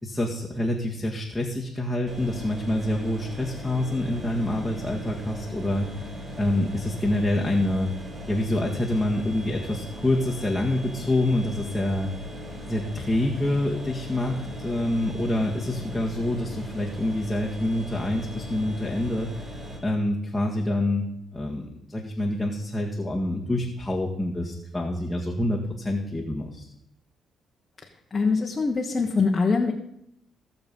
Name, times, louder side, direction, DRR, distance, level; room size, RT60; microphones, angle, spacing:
voice 1, 0.0-6.0 6.4-7.9 8.3-12.1 12.7-19.3 19.8-21.0 21.3-26.7, left 1 dB, 10° left, -3 dB, 1.9 m, -26 dB
sound 1, 2.1-19.8, equal, 35° right, 4.4 m, -38 dB
voice 2, 28.1-29.7, left 4 dB, 30° left, 0 dB, 1.4 m, -23 dB
17.0 x 6.9 x 5.5 m, 0.76 s
cardioid pair, 90°, 0 cm